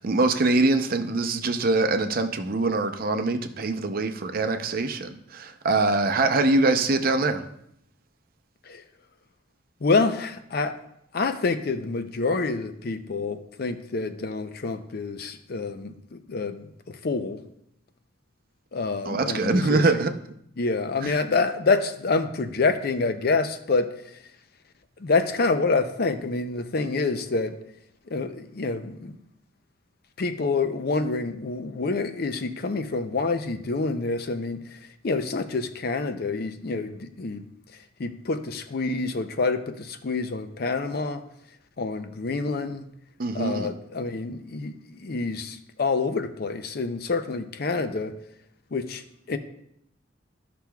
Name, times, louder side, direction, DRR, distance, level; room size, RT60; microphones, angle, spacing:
voice 1, 0.0-7.4 19.0-20.1 21.0-21.2 43.2-43.7, right 3 dB, 50° right, 7 dB, 0.6 m, -23 dB
voice 2, 9.8-10.8 11.1-17.4 18.7-20.0 20.6-24.2 25.0-27.6 28.1-29.2 30.2-34.8 35.0-37.4 38.0-41.2 41.8-42.9 43.3-48.1 48.7-49.0 49.3-49.4, left 3 dB, 55° left, 9 dB, 0.5 m, -27 dB
13.0 x 5.9 x 2.3 m, 0.75 s
head